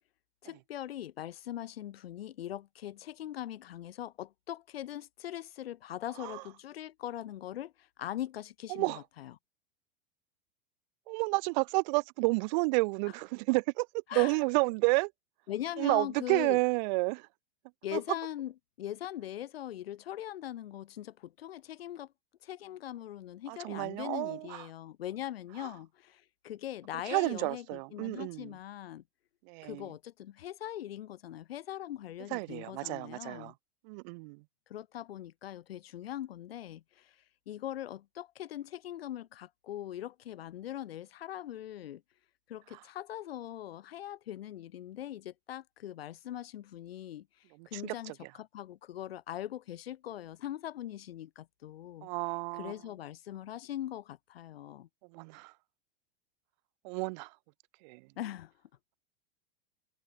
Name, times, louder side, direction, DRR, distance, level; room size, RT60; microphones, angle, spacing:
voice 1, 0.4-9.3 14.1-14.4 15.5-16.6 17.8-22.1 22.4-29.0 29.6-33.5 34.7-37.2 37.5-42.0 42.5-47.3 47.7-52.1 52.5-54.9 58.2-58.5, left 12 dB, 75° left, 3.1 m, -41 dB
voice 2, 11.1-15.1 15.8-17.3 17.9-18.0 23.5-24.6 27.0-28.5 29.5-29.9 32.3-33.5 33.8-34.4 47.6-48.1 52.0-52.7 55.1-55.5 56.8-57.3 57.8-58.0, right 28 dB, 50° right, 0.4 m, -31 dB
hypercardioid pair, 105°, 30 cm